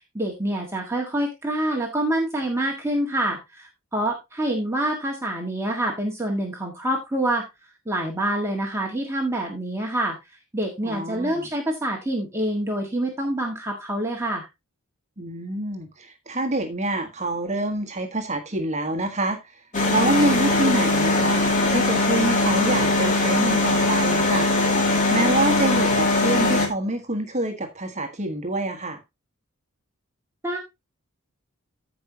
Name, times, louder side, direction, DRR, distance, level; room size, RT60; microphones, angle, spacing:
voice 1, 0.1-7.5 7.9-10.2 10.5-14.5 30.4-30.6, right 1 dB, 10° right, 1.6 m, -26 dB
voice 2, 10.8-11.5 15.2-19.6 19.9-24.7 25.1-29.0, right 2 dB, 30° right, 1.4 m, -26 dB
sound 1, 19.7-26.7, left 2 dB, 35° left, 2.1 m, -21 dB
15.0 x 5.3 x 2.8 m
head